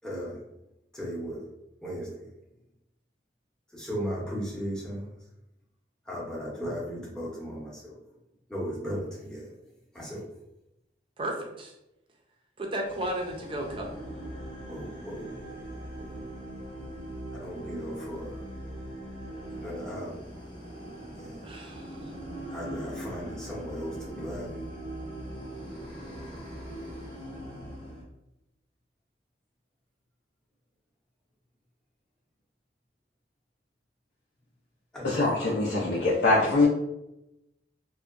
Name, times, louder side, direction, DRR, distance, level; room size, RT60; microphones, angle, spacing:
voice 1, 0.0-0.4 0.9-1.4 1.8-2.3 3.7-5.1 6.1-8.0 8.5-9.6 9.9-10.3 14.7-16.1 17.3-18.5 19.6-20.4 21.1-21.4 22.5-24.7 34.9-35.1, equal, 5° left, -5 dB, 0.7 m, -37 dB
voice 2, 11.2-11.7 12.6-13.9 21.4-22.0, right 1 dB, 30° right, 1 dB, 0.5 m, -34 dB
sound 1, 12.9-28.0, right 1 dB, 30° left, 0.8 m, -41 dB
voice 3, 35.0-36.7, left 2 dB, 70° left, -5 dB, 0.5 m, -23 dB
2.7 x 2.1 x 2.4 m, 0.89 s
head